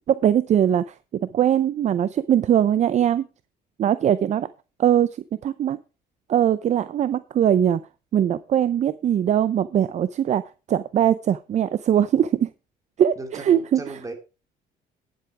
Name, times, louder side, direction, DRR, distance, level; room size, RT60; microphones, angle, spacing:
voice 1, 0.1-0.9 1.2-3.2 3.8-4.5 4.8-5.2 5.4-5.8 6.3-7.8 8.1-10.4 10.7-12.5 13.0-13.8, right 10 dB, 45° right, 0.5 m, -21 dB
voice 2, 13.2-14.1, right 2 dB, 20° right, 2.7 m, -36 dB
10.0 x 7.6 x 4.8 m
cardioid pair, 110°, 17 cm